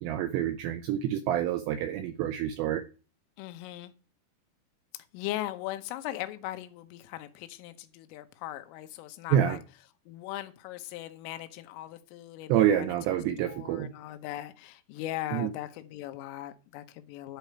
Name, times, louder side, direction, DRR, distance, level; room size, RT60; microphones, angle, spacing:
voice 1, 0.0-2.8 9.3-9.6 12.5-13.9 15.3-15.5, right 10 dB, 90° right, 2.5 m, -27 dB
voice 2, 3.4-3.9 5.1-9.6 10.1-13.0 13.4-17.4, left 14 dB, 80° left, 3.5 m, -39 dB
11.5 x 4.9 x 7.9 m
omnidirectional pair, 5.9 m